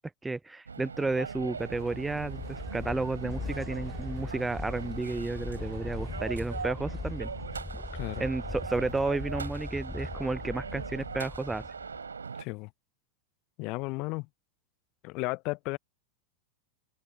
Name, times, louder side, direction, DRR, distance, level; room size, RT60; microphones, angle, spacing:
voice 1, 0.2-7.3 8.2-11.7, right 3 dB, 10° right, 0.8 m, -32 dB
sound 1, 0.7-12.4, right 5 dB, 75° right, 6.9 m, -40 dB
sound 2, 1.3-12.1, left 3 dB, 10° left, 5.4 m, -40 dB
sound 3, 1.6-6.7, right 13 dB, 35° right, 7.2 m, -56 dB
voice 2, 7.9-8.2 12.4-12.7 13.6-14.3 15.0-15.8, left 26 dB, 40° left, 0.8 m, -34 dB
figure-of-eight pair, 90°, 0 cm